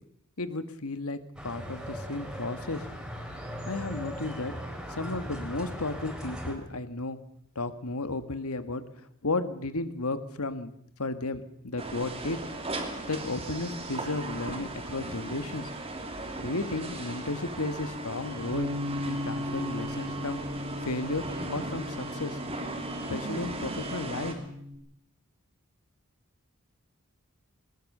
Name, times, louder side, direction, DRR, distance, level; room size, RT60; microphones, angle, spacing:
voice 1, 0.4-2.9 3.7-4.5 4.9-7.2 7.6-8.8 9.2-10.7 11.0-12.4 13.1-15.7 16.4-18.7 19.1-20.4 20.8-22.4 23.1-24.4, left 2 dB, 80° left, 11 dB, 1.7 m, -33 dB
sound 1, 1.4-6.5, equal, 5° right, 3.8 m, -39 dB
sound 2, 11.8-24.3, right 2 dB, 25° right, 3.0 m, -37 dB
Bass guitar, 18.5-24.8, left 2 dB, 65° right, 3.4 m, -37 dB
20.5 x 20.5 x 6.7 m, 0.71 s
head